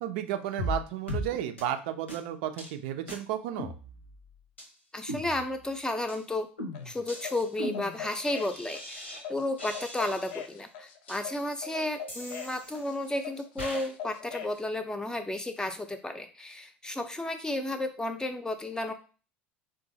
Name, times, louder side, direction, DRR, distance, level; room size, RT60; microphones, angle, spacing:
voice 1, 0.0-3.7, right 11 dB, 65° right, 7 dB, 0.5 m, -33 dB
sound 1, 0.6-0.8 1.1-1.3 1.6-1.7 2.1-2.2 2.6-2.7 3.1-3.2 3.6-4.2 4.6-4.7 5.1-5.7 6.1-6.2 6.6-9.2 9.6-10.5 11.1-11.2 12.1-13.0 13.6-13.9, left 1 dB, 90° left, 1.0 m, -38 dB
voice 2, 4.9-6.5 6.8-18.9, left 1 dB, 10° left, 7 dB, 0.5 m, -33 dB
sound 2, 6.7-14.6, left 7 dB, 65° left, 0.5 m, -42 dB
3.6 x 2.6 x 2.6 m, 0.36 s
figure-of-eight pair, 75°, 6 cm